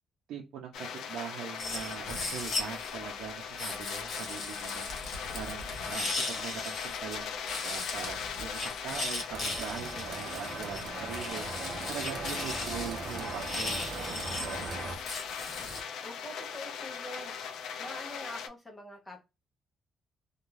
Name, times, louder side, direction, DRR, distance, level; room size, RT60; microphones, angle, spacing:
voice 1, 0.3-4.8 5.3-11.5 11.9-14.6, right 8 dB, 85° right, 0 dB, 0.5 m, -42 dB
sound 1, 0.7-18.5, left 7 dB, 75° left, 0.4 m, -40 dB
sound 2, 1.6-2.9 3.6-7.2 7.5-15.8, left 2 dB, 45° left, 1.0 m, -38 dB
sound 3, 9.3-15.0, right 3 dB, 45° right, 0.7 m, -39 dB
voice 2, 16.0-17.3 17.8-19.2, left 1 dB, 10° left, 3 dB, 0.7 m, -44 dB
2.5 x 2.2 x 3.0 m, 0.25 s
cardioid pair, 180°, 0 cm